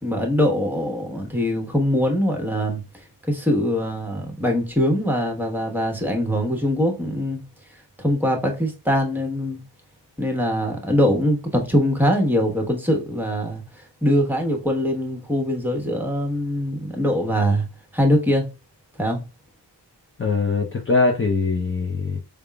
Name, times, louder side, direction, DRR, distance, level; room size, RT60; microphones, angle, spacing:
voice 1, 0.0-2.8 3.3-7.4 8.0-9.6 10.2-13.6 14.0-17.6 17.9-18.5 19.0-19.2, equal, 5° right, 1.1 m, -22 dB
voice 2, 20.2-22.2, left 3 dB, 30° left, 0.7 m, -22 dB
4.9 x 3.5 x 2.2 m
wide cardioid pair, 110°, 41 cm